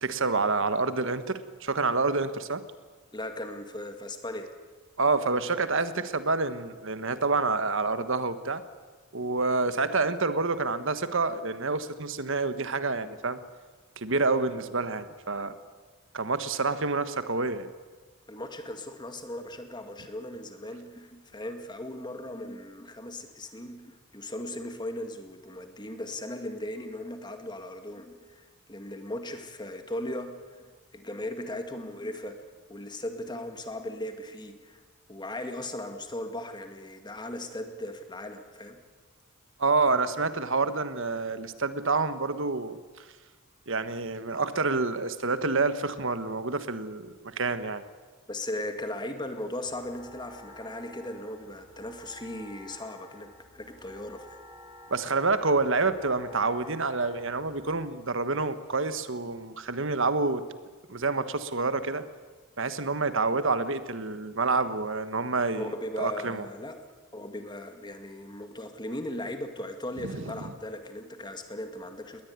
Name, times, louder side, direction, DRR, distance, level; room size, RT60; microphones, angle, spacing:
voice 1, 0.0-2.6 5.0-8.6 9.1-13.4 14.0-15.5 16.1-17.7 39.6-43.0 43.7-47.8 54.9-60.4 60.9-62.0 62.6-65.7 66.0-66.5 70.0-70.4, right 3 dB, 60° right, 12 dB, 1.4 m, -28 dB
voice 2, 3.1-4.5 18.3-30.6 30.9-32.4 32.7-34.8 35.1-38.8 48.3-54.4 65.6-66.8 67.1-72.2, left 1 dB, 20° left, 7 dB, 2.0 m, -38 dB
sound 1, 49.6-57.8, left 1 dB, 20° right, 7.4 m, -51 dB
20.0 x 20.0 x 9.6 m, 1.4 s
head